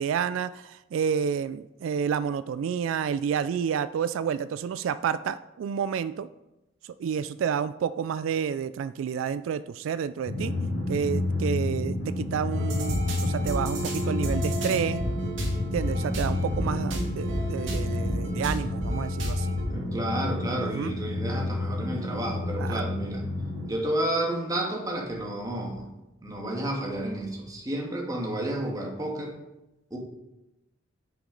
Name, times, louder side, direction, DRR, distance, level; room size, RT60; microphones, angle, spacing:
voice 1, 0.0-6.3 7.0-10.5 10.9-15.0 15.7-19.5 20.6-20.9 22.6-22.9, right 7 dB, 85° right, 14 dB, 0.3 m, -30 dB
Drum, 10.3-23.7, left 2 dB, 50° left, 1.7 m, -30 dB
sound 1, 12.5-19.6, right 1 dB, 70° right, 2.2 m, -32 dB
voice 2, 19.7-23.2 23.7-25.9 26.2-29.3 29.9-30.0, right 1 dB, 20° right, -1 dB, 1.6 m, -31 dB
9.6 x 5.9 x 3.9 m, 0.97 s
head